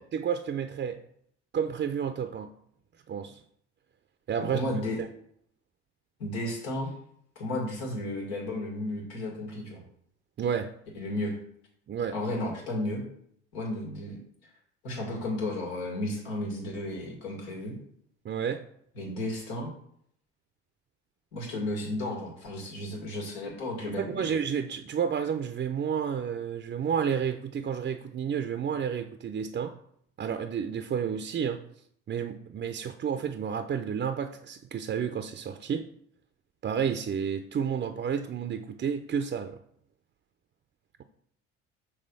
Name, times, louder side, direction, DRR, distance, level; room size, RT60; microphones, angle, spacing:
voice 1, 0.1-1.0 1.5-2.5 3.1-3.4 4.3-4.6 10.4-10.7 11.9-12.2 18.2-18.6 24.0-29.8 30.2-31.6 32.1-35.9 36.6-39.6, right 7 dB, 35° right, 0.5 m, -31 dB
voice 2, 4.5-5.0 6.2-6.9 7.4-9.8 10.9-11.4 12.1-13.0 13.5-14.5 14.8-17.8 19.0-19.7 21.3-24.3, left 1 dB, 85° left, 1.9 m, -33 dB
5.6 x 3.3 x 5.3 m
hypercardioid pair, 65°, 32 cm